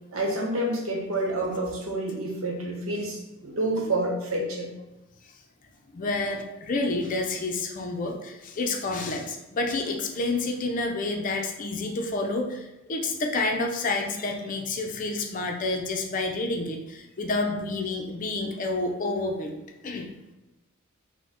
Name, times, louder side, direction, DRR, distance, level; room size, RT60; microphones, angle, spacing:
voice 1, 0.1-4.7, right 1 dB, 75° right, -1 dB, 1.0 m, -28 dB
voice 2, 5.9-19.6 19.8-20.1, left 2 dB, 40° left, 2 dB, 0.5 m, -29 dB
4.2 x 2.2 x 4.2 m, 0.99 s
head